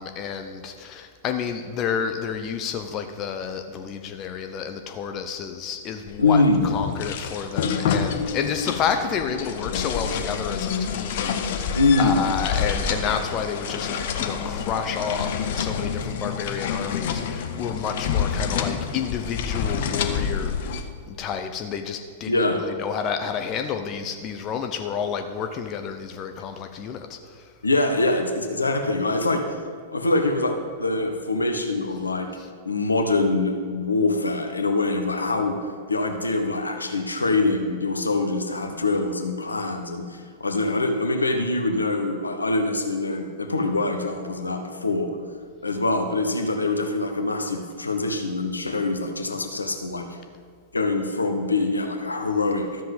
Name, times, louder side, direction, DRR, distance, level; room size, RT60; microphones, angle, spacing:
voice 1, 0.0-6.4 6.7-13.9 14.2-27.4, left 7 dB, 30° left, 6 dB, 0.7 m, -30 dB
sound 1, 6.1-20.8, left 7 dB, 50° left, 0.9 m, -28 dB
voice 2, 6.2-6.6 11.7-12.2 22.3-22.6 27.6-29.4 29.9-32.3 32.6-35.6 35.9-45.1 45.6-50.2 50.7-52.7, left 2 dB, 80° left, 5 dB, 1.2 m, -24 dB
13.0 x 7.6 x 5.3 m, 2.1 s
figure-of-eight pair, 100°, 0 cm